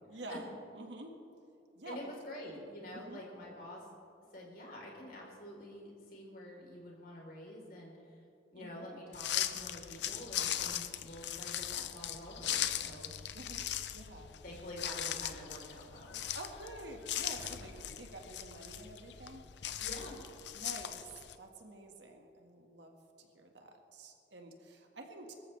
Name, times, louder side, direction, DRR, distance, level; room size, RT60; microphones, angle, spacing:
voice 1, 0.1-0.5 0.7-1.2 1.8-2.0 2.9-3.2 8.5-8.9 13.3-13.7 13.9-14.4 16.3-19.5 20.5-21.1 21.4-25.3, right 2 dB, 75° right, 3 dB, 1.8 m, -49 dB
voice 2, 1.8-3.9 4.3-8.2 8.5-13.1 14.4-16.2 19.8-20.2, left 1 dB, 50° left, -2 dB, 3.8 m, -47 dB
sound 1, 9.1-21.3, left 11 dB, 70° left, 0.7 m, -39 dB
23.5 x 14.0 x 3.4 m, 2.6 s
head